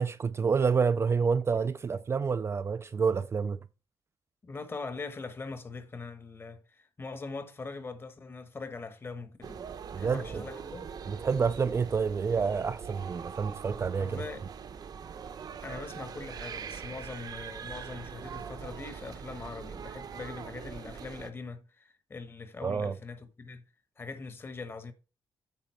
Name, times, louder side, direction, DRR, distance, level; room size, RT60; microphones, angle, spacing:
voice 1, 0.0-3.6 9.9-10.4 11.1-14.2 22.6-22.9, right 5 dB, 30° right, 0.4 m, -28 dB
voice 2, 4.4-9.6 9.9-10.9 14.0-14.5 15.6-23.6 24.0-24.9, left 4 dB, 30° left, 1.2 m, -42 dB
sound 1, 9.4-21.3, right 7 dB, 55° right, 0.8 m, -42 dB
9.0 x 4.1 x 5.9 m
wide cardioid pair, 145°, 8 cm